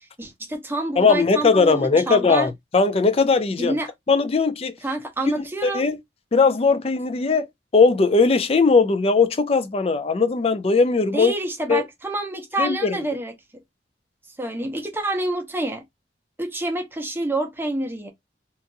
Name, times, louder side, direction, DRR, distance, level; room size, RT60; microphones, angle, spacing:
voice 1, 0.2-2.5 3.6-3.9 4.8-5.8 11.1-13.3 14.4-15.8 16.4-18.1, right 2 dB, 10° right, 0.7 m, -27 dB
voice 2, 1.0-3.8 4.1-4.7 5.4-6.0 6.3-7.5 7.7-11.3 11.7-11.8 12.6-13.0, left 4 dB, 35° left, 0.4 m, -19 dB
2.9 x 2.5 x 2.5 m
head